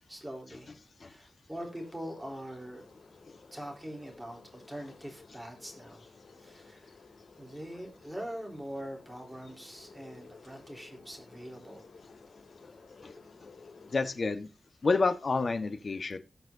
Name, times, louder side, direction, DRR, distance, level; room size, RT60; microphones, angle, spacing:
voice 1, 0.1-0.8 1.0-2.9 3.5-6.1 6.4-7.0 7.4-11.9, equal, 10° right, 4.0 m, -43 dB
sound 1, 1.5-14.1, left 4 dB, 85° left, 4.9 m, -55 dB
voice 2, 13.9-14.5 14.8-16.2, left 3 dB, 50° left, 1.4 m, -29 dB
18.0 x 6.1 x 2.8 m
wide cardioid pair, 110°, 0 cm